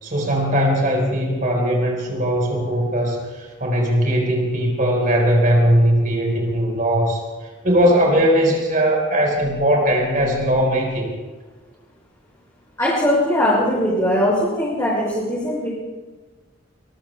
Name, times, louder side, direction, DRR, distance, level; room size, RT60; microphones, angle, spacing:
voice 1, 0.0-7.2 7.6-11.1, equal, 45° right, 0 dB, 4.5 m, -19 dB
voice 2, 12.8-15.7, left 1 dB, 15° left, -8 dB, 6.1 m, -20 dB
26.0 x 22.5 x 2.3 m, 1.3 s
head